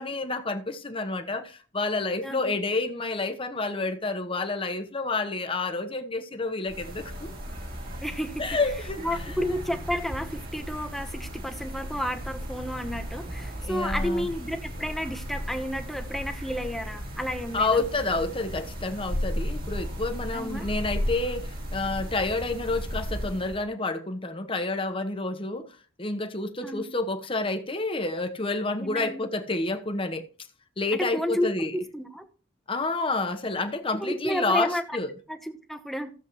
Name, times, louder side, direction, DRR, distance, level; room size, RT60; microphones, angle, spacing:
voice 1, 0.0-7.3 8.4-9.0 13.6-14.3 17.5-30.2 30.8-31.7 32.7-35.1, left 3 dB, 25° left, 1.1 m, -29 dB
voice 2, 2.2-2.5 8.0-8.4 9.0-17.8 20.3-20.7 26.6-26.8 28.8-29.2 30.9-32.2 34.0-35.0 35.3-36.1, equal, ahead, 1.0 m, -31 dB
sound 1, 6.7-23.6, equal, 50° right, 2.7 m, -35 dB
15.0 x 7.3 x 3.1 m
head